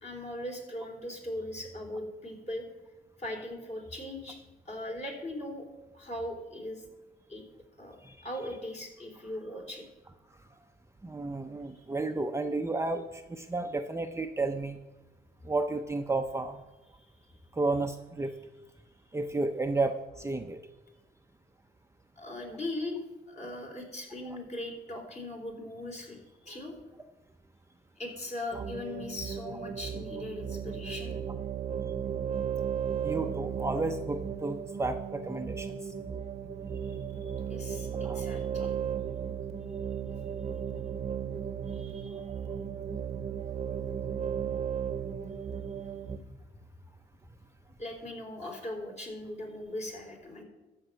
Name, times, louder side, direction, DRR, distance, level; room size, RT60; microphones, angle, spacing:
voice 1, 0.0-2.6 3.2-4.4 4.7-5.7 5.9-6.8 7.3-7.5 7.8-8.0 8.2-9.9 11.6-11.8 22.2-23.0 23.3-26.8 28.0-31.1 37.1-38.7 41.7-42.2 47.8-50.4, left 1 dB, 35° left, 1 dB, 3.4 m, -39 dB
voice 2, 11.0-14.8 15.4-16.6 17.5-18.3 19.1-20.6 24.3-24.4 33.0-35.9 38.0-38.2, right 3 dB, 15° right, 5 dB, 0.7 m, -32 dB
sound 1, 28.5-46.2, right 7 dB, 35° right, 1.0 m, -35 dB
13.0 x 5.5 x 7.6 m, 1.1 s
cardioid pair, 90°, 20 cm